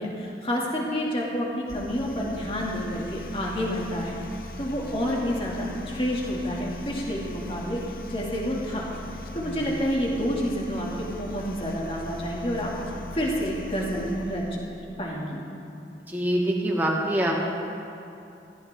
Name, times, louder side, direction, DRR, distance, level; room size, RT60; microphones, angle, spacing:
voice 1, 0.0-4.2 4.6-7.8 8.1-8.9 9.3-14.7 15.0-15.4, equal, 30° left, -3 dB, 2.7 m, -29 dB
sound 1, 1.7-14.6, left 1 dB, 60° left, 1.1 m, -40 dB
voice 2, 16.1-17.4, right 1 dB, 10° right, -2 dB, 1.9 m, -25 dB
20.0 x 16.0 x 3.9 m, 2.7 s
head